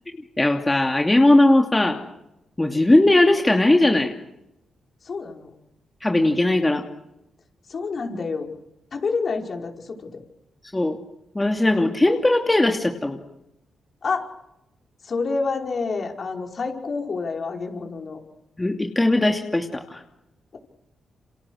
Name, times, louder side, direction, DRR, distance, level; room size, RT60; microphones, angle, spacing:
voice 1, 0.4-2.0 2.6-4.1 6.0-6.8 10.7-11.0 11.3-13.2 18.6-20.0, left 1 dB, 20° left, 3 dB, 2.7 m, -19 dB
voice 2, 5.0-5.5 7.7-8.5 8.9-10.2 14.0-14.3 15.0-18.2, left 4 dB, 55° left, 2 dB, 5.4 m, -28 dB
29.5 x 27.0 x 6.5 m, 0.86 s
cardioid pair, 70°, 0 cm